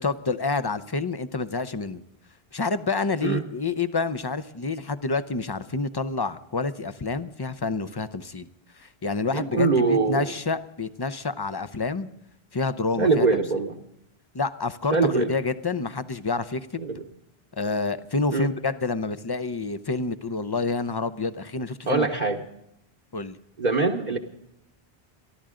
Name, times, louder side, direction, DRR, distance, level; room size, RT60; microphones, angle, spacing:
voice 1, 0.0-2.0 2.5-8.5 8.7-12.1 12.5-13.3 14.3-16.9 17.5-22.1 23.1-23.4, left 4 dB, 30° left, 12 dB, 0.6 m, -28 dB
voice 2, 9.3-10.2 13.0-13.8 14.9-15.3 16.8-17.0 18.3-18.5 21.9-22.4 23.6-24.2, right 4 dB, 45° right, 0 dB, 1.0 m, -23 dB
27.5 x 12.0 x 3.8 m, 0.80 s
omnidirectional pair, 1.1 m